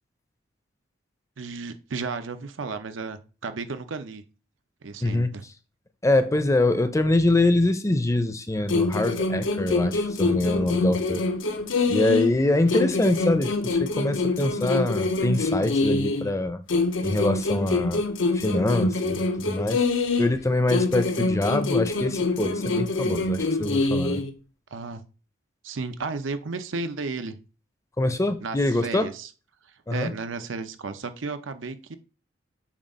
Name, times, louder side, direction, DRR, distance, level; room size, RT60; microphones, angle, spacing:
voice 1, 1.4-4.2 4.8-5.5 24.7-25.0 25.6-27.4 28.4-29.3 29.9-32.0, right 4 dB, 90° right, 0.7 m, -33 dB
voice 2, 5.0-5.3 6.0-11.2 11.9-16.6 17.0-18.0 18.3-19.8 20.2-24.2 28.0-29.1 29.9-30.1, left 2 dB, 15° left, 0.5 m, -24 dB
sound 1, 8.7-12.4 12.7-16.3 16.7-20.4 20.7-24.3, left 3 dB, 85° left, 0.7 m, -25 dB
7.3 x 2.4 x 5.2 m
head